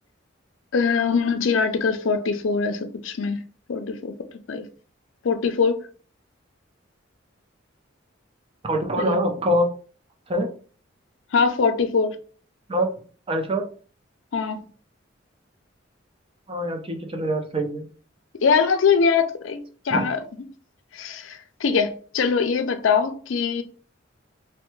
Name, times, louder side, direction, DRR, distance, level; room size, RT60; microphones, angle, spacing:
voice 1, 0.7-3.4 3.7-4.1 4.5-4.7 5.2-5.8 9.0-9.2 11.3-12.2 14.3-14.6 18.4-20.2 20.9-23.6, left 5 dB, 70° left, 0.4 m, -22 dB
voice 2, 8.6-9.7 10.3-10.5 12.7-12.9 13.3-13.7 16.5-17.8 19.9-20.0, equal, 30° right, 0.5 m, -24 dB
3.3 x 2.2 x 3.1 m
head